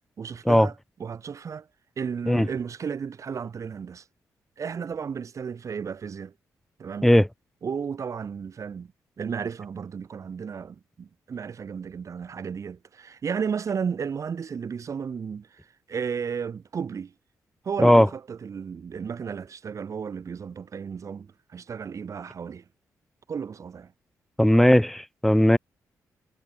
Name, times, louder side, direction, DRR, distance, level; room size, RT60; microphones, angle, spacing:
voice 1, 0.2-1.7 2.0-4.0 4.6-6.3 6.8-7.1 7.6-8.9 9.2-15.6 15.9-17.1 17.6-22.6 23.3-23.9, right 6 dB, 55° right, 7.0 m, -33 dB
voice 2, 24.4-25.6, equal, 5° left, 1.5 m, -17 dB
cardioid pair, 85°, 6 cm